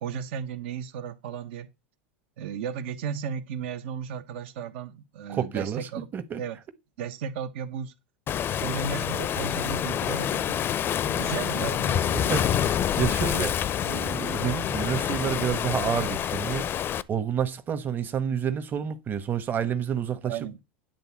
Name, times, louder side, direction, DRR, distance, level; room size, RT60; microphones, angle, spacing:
voice 1, 0.0-1.7 2.4-6.1 6.4-6.6 7.0-7.9 8.6-10.6 11.1-12.5 20.2-20.6, right 7 dB, 70° right, 1.3 m, -34 dB
voice 2, 5.3-5.8 6.1-6.4 12.3-13.6 13.9-16.7 17.1-20.4, right 8 dB, 30° right, 1.2 m, -29 dB
Waves surf, 8.3-17.0, left 9 dB, 35° left, 0.6 m, -27 dB
10.5 x 3.7 x 7.2 m
hypercardioid pair, 105°, 7 cm